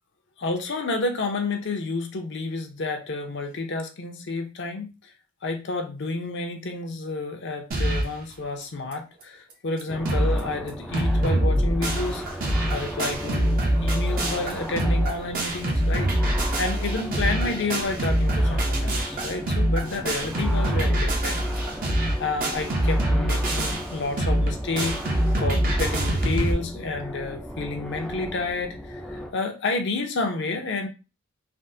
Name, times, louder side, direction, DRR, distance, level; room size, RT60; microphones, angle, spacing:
voice 1, 0.4-5.1 5.4-12.2 12.7-21.4 22.2-25.0 25.4-30.9, left 3 dB, 60° left, 4 dB, 0.6 m, -30 dB
sound 1, 7.7-8.2 8.6-8.7 8.9-9.0 9.5-9.6 9.8-10.4 10.7-26.5, right 1 dB, 45° right, 0.6 m, -24 dB
sound 2, 9.9-29.3, equal, ahead, 0.3 m, -37 dB
3.4 x 2.1 x 2.6 m, 0.30 s
head